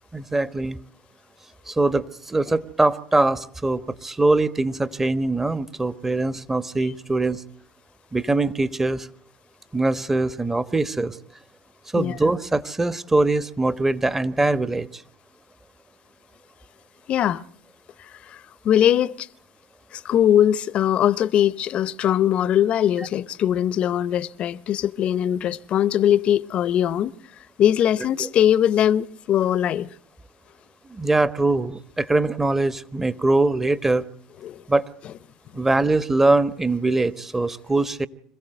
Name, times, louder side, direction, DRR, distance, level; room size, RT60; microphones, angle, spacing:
voice 1, 0.1-0.8 1.7-7.4 8.1-9.1 9.7-11.2 11.9-15.0 28.2-28.3 30.9-34.0 34.7-34.9 35.5-38.1, right 2 dB, 15° right, 1.2 m, -22 dB
voice 2, 17.1-17.4 18.3-19.3 19.9-27.2 27.6-29.9 34.4-34.6, left 10 dB, 50° left, 0.8 m, -21 dB
26.0 x 15.5 x 7.9 m
hypercardioid pair, 75°, 2 cm